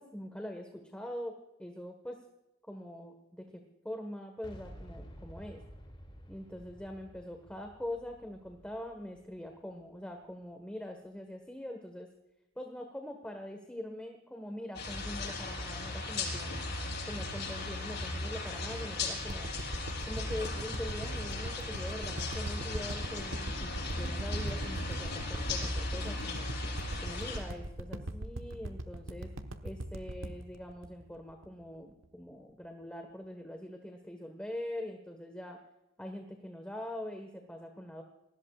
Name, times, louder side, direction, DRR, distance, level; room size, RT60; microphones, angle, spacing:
voice 1, 0.0-2.2 2.7-5.6 6.3-12.1 12.5-16.6 17.0-19.5 20.1-26.5 27.0-29.3 29.6-35.6 36.0-38.0, left 1 dB, 5° left, 4 dB, 1.4 m, -43 dB
Boom, 4.4-10.3, equal, 25° left, 2.6 m, -52 dB
sound 1, 14.7-27.4, left 2 dB, 55° left, 6.9 m, -37 dB
sound 2, 19.3-31.6 32.0-32.1, right 1 dB, 75° right, 1.3 m, -40 dB
28.0 x 19.5 x 2.5 m, 0.95 s
head